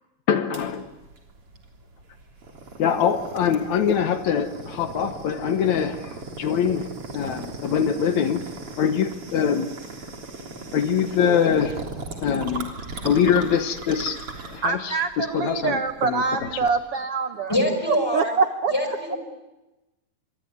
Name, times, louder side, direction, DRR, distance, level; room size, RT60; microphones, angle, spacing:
voice 1, 0.3-0.9 2.8-6.9 7.1-8.5 8.8-9.7 10.7-11.8 12.2-12.7 13.0-16.5, left 7 dB, 65° left, 9 dB, 2.0 m, -23 dB
sound 1, 0.5-16.8, right 3 dB, 40° right, 4.1 m, -38 dB
voice 2, 14.6-17.5 17.9-18.7, right 5 dB, 75° right, 8 dB, 1.3 m, -25 dB
voice 3, 17.5-18.3 18.7-19.2, left 1 dB, 5° left, 6 dB, 4.7 m, -24 dB
26.5 x 23.0 x 9.5 m, 1.1 s
omnidirectional pair, 4.3 m